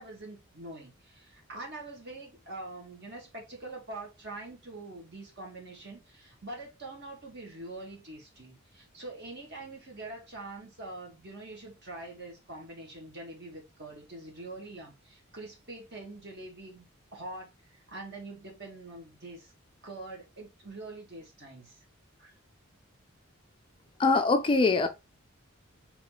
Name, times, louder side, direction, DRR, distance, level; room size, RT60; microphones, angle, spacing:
voice 1, 0.0-16.9 17.1-19.5 19.8-21.8 22.2-22.3, right 2 dB, 50° right, 1.8 m, -44 dB
voice 2, 24.0-24.9, left 3 dB, 25° left, 0.4 m, -23 dB
4.1 x 3.0 x 3.8 m
head